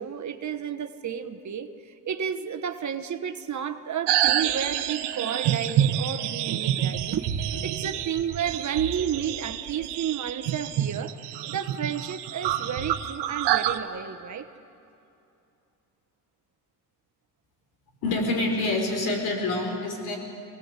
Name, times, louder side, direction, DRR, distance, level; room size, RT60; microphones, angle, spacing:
voice 1, 0.0-11.1 11.5-14.5, right 8 dB, 45° right, 7 dB, 1.2 m, -32 dB
sound 1, 4.1-13.8, right 11 dB, 85° right, 1.0 m, -27 dB
voice 2, 18.0-20.2, left 2 dB, 70° left, 2 dB, 4.8 m, -26 dB
24.5 x 18.5 x 8.3 m, 2.7 s
cardioid pair, 85°, 39 cm